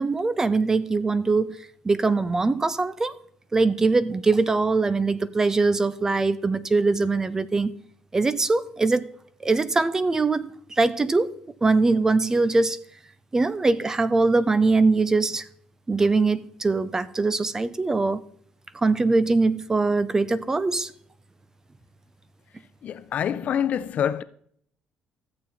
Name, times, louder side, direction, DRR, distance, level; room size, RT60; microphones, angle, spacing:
voice 1, 0.0-1.6 1.8-3.1 3.5-7.7 8.1-9.1 9.4-11.3 11.6-12.8 13.3-15.4 15.9-18.2 18.8-20.9, right 3 dB, 20° right, 0.5 m, -22 dB
voice 2, 22.8-24.2, left 9 dB, 50° left, 0.6 m, -26 dB
14.0 x 7.5 x 4.1 m
cardioid pair, 125°, 3 cm